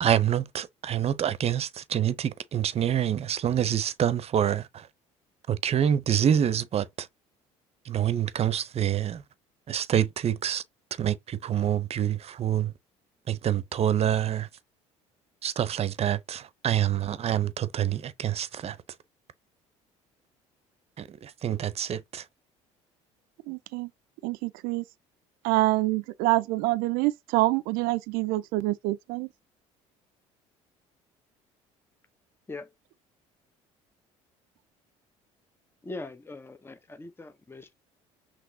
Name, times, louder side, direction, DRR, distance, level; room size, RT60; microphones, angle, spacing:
voice 1, 0.0-4.9 5.5-7.1 7.8-9.2 9.7-10.6 11.0-12.7 13.3-14.5 15.4-18.8 21.0-22.2, right 10 dB, 45° right, 0.7 m, -26 dB
voice 2, 23.5-23.9 24.2-24.8 25.4-29.3, right 19 dB, 75° right, 0.4 m, -26 dB
voice 3, 35.8-37.7, left 2 dB, 15° left, 0.9 m, -41 dB
5.9 x 3.1 x 2.7 m
supercardioid pair, 75°, 15 cm